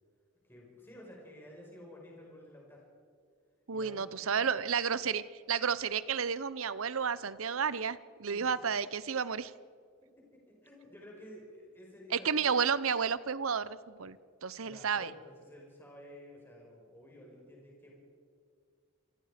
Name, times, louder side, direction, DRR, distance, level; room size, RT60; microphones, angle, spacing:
voice 1, 0.4-2.8 3.7-4.7 8.3-8.5 10.2-12.6 14.6-18.0, left 1 dB, 10° left, -2 dB, 5.4 m, -52 dB
voice 2, 3.7-9.5 12.1-14.2 14.4-15.1, right 6 dB, 75° right, 17 dB, 0.7 m, -32 dB
27.0 x 19.0 x 5.1 m, 2.2 s
head